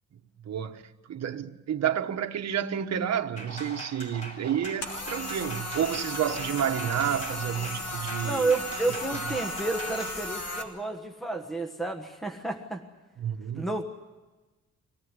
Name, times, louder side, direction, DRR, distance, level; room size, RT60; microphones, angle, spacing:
voice 1, 0.4-0.8 1.1-8.6 8.9-9.0 13.2-13.7, right 9 dB, 60° right, 1.3 m, -30 dB
sound 1, 3.4-10.2, right 1 dB, 25° left, 5.2 m, -41 dB
sound 2, 4.8-10.6, left 2 dB, 55° left, 3.3 m, -35 dB
voice 2, 8.2-12.8 13.5-13.8, right 3 dB, ahead, 1.3 m, -30 dB
25.0 x 18.5 x 9.7 m
wide cardioid pair, 175°, 30 cm